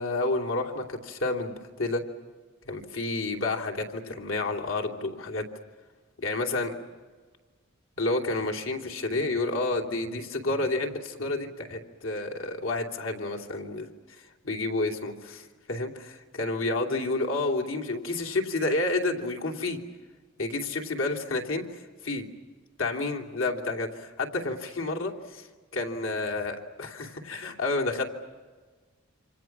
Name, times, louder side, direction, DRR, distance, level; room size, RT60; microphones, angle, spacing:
voice 1, 0.0-2.0 2.6-5.5 6.2-6.7 8.0-19.8 20.4-22.3 22.8-25.5 25.7-28.0, left 2 dB, 75° left, 1 dB, 3.0 m, -30 dB
28.0 x 27.0 x 6.1 m, 1.4 s
head